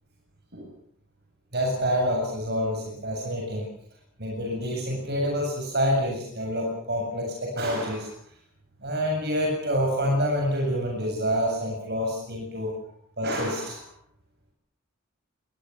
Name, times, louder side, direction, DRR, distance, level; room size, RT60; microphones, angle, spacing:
voice 1, 1.5-3.7 4.2-8.1 8.8-12.7 13.2-13.9, equal, 50° right, 0 dB, 7.8 m, -27 dB
27.5 x 20.5 x 7.3 m, 0.62 s
head